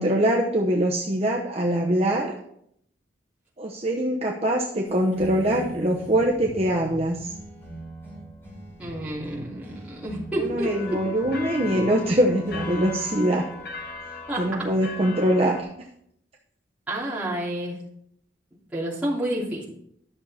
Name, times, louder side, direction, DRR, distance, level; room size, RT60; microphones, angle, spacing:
voice 1, 0.0-2.4 3.6-7.3 10.4-13.5 14.4-15.7, right 1 dB, 35° right, -1 dB, 0.8 m, -23 dB
sound 1, 4.8-15.4, right 1 dB, 10° left, 4.6 m, -41 dB
voice 2, 8.8-11.0 14.3-14.7 16.9-17.8 18.7-19.7, right 1 dB, 10° right, -8 dB, 3.0 m, -29 dB
sound 2, 10.6-15.6, left 4 dB, 50° left, 1.4 m, -38 dB
12.0 x 6.4 x 4.2 m, 0.72 s
head